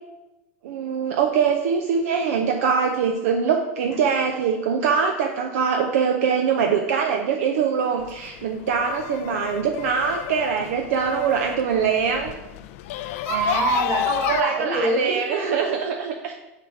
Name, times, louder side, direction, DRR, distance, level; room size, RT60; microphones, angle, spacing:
voice 1, 0.6-12.3 14.2-16.3, right 6 dB, 75° right, 3 dB, 0.6 m, -23 dB
sound 1, 8.0-14.4, left 13 dB, 70° left, 0.4 m, -31 dB
voice 2, 13.2-15.7, right 2 dB, 40° right, -1 dB, 2.3 m, -25 dB
4.9 x 4.8 x 6.0 m, 1.0 s
hypercardioid pair, 105°, 8 cm